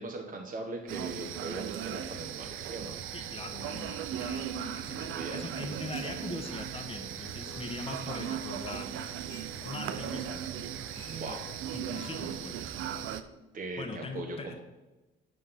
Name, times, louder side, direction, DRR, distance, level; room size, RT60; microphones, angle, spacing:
voice 1, 0.0-2.9 4.9-5.4 11.1-11.4 13.5-14.6, right 2 dB, 40° right, 1 dB, 1.2 m, -40 dB
sound 1, 0.9-13.2, right 9 dB, 85° right, 0.6 m, -37 dB
voice 2, 3.1-4.5 4.7-8.9 9.6-10.4 10.9-11.4 11.7-12.6 13.8-14.6, left 3 dB, 30° left, 4 dB, 1.2 m, -41 dB
sound 2, 6.2-12.1, left 10 dB, 80° left, 0.6 m, -52 dB
7.8 x 5.4 x 5.8 m, 1.1 s
cardioid pair, 90°, 20 cm